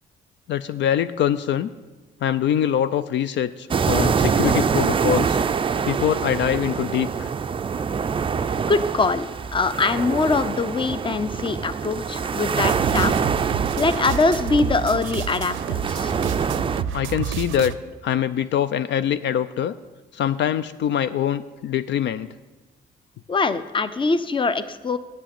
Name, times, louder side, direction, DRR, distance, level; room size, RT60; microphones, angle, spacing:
voice 1, 0.5-1.7 2.2-5.4 5.9-7.3 16.9-17.7 18.0-19.7 20.1-22.3, left 10 dB, 65° left, 13 dB, 0.4 m, -23 dB
sound 1, 3.7-16.8, right 6 dB, 25° right, 0.4 m, -25 dB
voice 2, 8.7-9.3 9.5-13.3 13.8-16.1 23.3-25.0, left 4 dB, 25° left, 13 dB, 0.6 m, -23 dB
sound 2, 12.7-17.7, right 9 dB, 90° right, 0.5 m, -29 dB
8.6 x 6.2 x 8.3 m, 1.2 s
cardioid pair, 90°, 20 cm